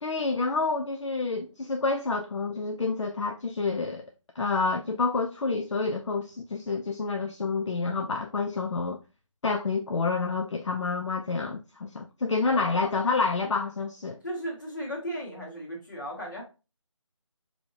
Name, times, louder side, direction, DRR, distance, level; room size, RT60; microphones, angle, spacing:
voice 1, 0.0-4.0 4.4-9.0 9.4-14.2, left 4 dB, 65° left, 0.4 m, -28 dB
voice 2, 12.4-13.0 14.2-16.4, equal, 40° left, 1.4 m, -36 dB
4.5 x 2.8 x 2.7 m
figure-of-eight pair, 180°, 17 cm